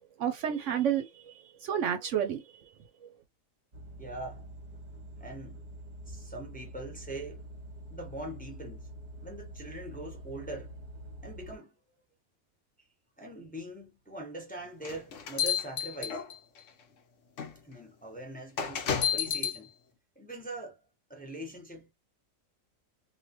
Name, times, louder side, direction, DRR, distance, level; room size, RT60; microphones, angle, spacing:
voice 1, 0.2-1.3 1.6-2.4 3.0-3.1, right 9 dB, 65° right, 0.9 m, -30 dB
sound 1, 3.7-11.6, right 1 dB, 35° right, 1.0 m, -46 dB
voice 2, 4.0-4.5 5.2-5.6 6.0-7.4 7.9-8.9 9.2-10.8 11.2-11.8 13.2-16.2 17.6-19.7 20.2-21.9, right 1 dB, 5° left, 0.9 m, -42 dB
sound 2, 14.8-16.6 17.4-17.5 18.6-19.6, left 8 dB, 65° left, 1.1 m, -30 dB
3.2 x 2.6 x 2.9 m
omnidirectional pair, 1.4 m